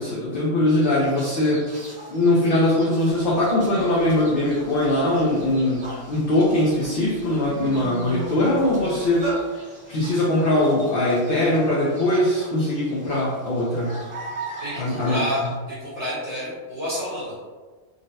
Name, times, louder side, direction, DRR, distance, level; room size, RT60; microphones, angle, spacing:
voice 1, 0.0-1.7 2.1-9.3 9.5-9.6 9.9-14.0 14.8-15.2, left 1 dB, 60° left, -5 dB, 0.6 m, -21 dB
sound 1, 0.8-15.6, right 2 dB, 80° right, 1.6 m, -42 dB
sound 2, 3.3-3.4 3.7-4.1 4.6-6.1 6.7-6.9 7.2-9.4, right 1 dB, 60° right, 1.2 m, -34 dB
voice 2, 14.6-17.4, equal, 30° right, -11 dB, 0.9 m, -29 dB
3.8 x 2.0 x 2.6 m, 1.4 s
omnidirectional pair, 1.3 m